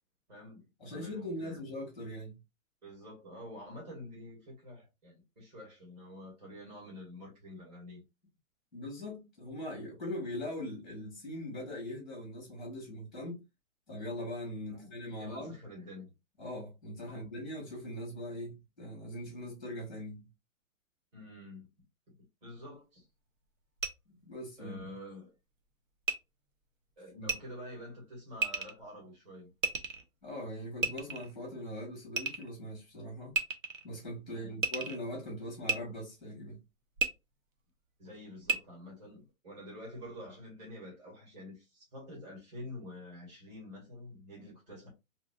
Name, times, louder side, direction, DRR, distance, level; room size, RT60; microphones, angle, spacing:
voice 1, 0.3-1.6 2.8-8.0 14.7-16.1 17.1-17.2 21.1-21.7 22.1-22.2 22.4-23.1 24.6-25.3 27.0-29.5 34.3-34.6 38.0-44.9, left 1 dB, 30° right, 2.1 m, -48 dB
voice 2, 0.8-2.4 8.7-13.4 13.9-15.5 16.4-20.3 24.2-24.9 27.2-27.3 30.2-33.4 33.8-36.6, left 1 dB, ahead, 0.9 m, -41 dB
sound 1, 23.8-23.9 26.0-26.1 27.2-27.4 28.4-28.7 29.6-30.0 30.8-31.3 32.2-32.5 33.3-33.9 34.6-35.0 35.7-35.8 37.0-37.1 38.4-38.6, right 4 dB, 65° right, 0.8 m, -31 dB
3.3 x 2.9 x 2.4 m
hypercardioid pair, 170°, 42 cm